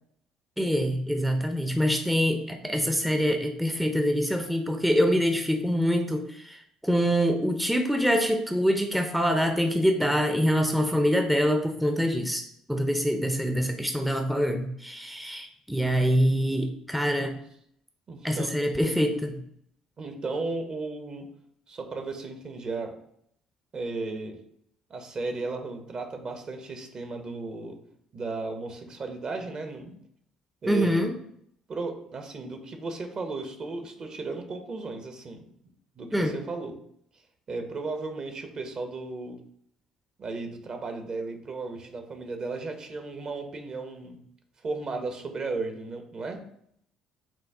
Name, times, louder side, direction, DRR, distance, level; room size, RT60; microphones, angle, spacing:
voice 1, 0.6-17.4 18.2-19.4 30.7-31.1 36.1-36.3, equal, ahead, 5 dB, 0.6 m, -25 dB
voice 2, 18.1-18.5 20.0-21.3 21.7-22.9 23.7-24.4 24.9-27.8 28.1-30.0 30.6-31.0 31.7-35.4 36.0-36.7 37.5-39.4 40.2-44.2 44.6-46.4, right 3 dB, 45° right, 5 dB, 0.9 m, -35 dB
6.1 x 2.3 x 3.5 m, 0.69 s
hypercardioid pair, 55°, 2 cm